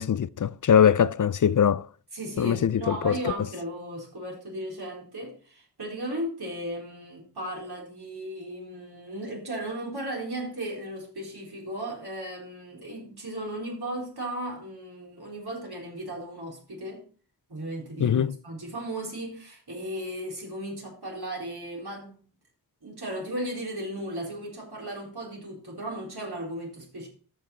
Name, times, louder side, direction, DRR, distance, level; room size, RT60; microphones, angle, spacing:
voice 1, 0.0-1.9 2.4-3.2 18.0-18.4, left 8 dB, 55° left, 0.5 m, -22 dB
voice 2, 2.1-17.0 17.5-22.2 22.8-27.1, right 1 dB, 75° right, 4.2 m, -36 dB
13.0 x 6.2 x 4.4 m
wide cardioid pair, 60°, 39 cm